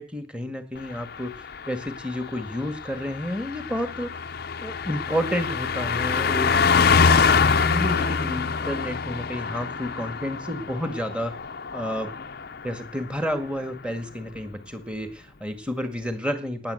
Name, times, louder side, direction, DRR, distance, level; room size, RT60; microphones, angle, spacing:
voice 1, 0.0-1.3 1.7-4.1 4.6-11.3 11.7-12.1 12.6-16.7, equal, 5° right, 9 dB, 1.8 m, -31 dB
Car passing by, 0.8-12.8 13.1-13.3, left 5 dB, 45° left, 0.7 m, -25 dB
18.0 x 9.9 x 7.8 m, 0.41 s
head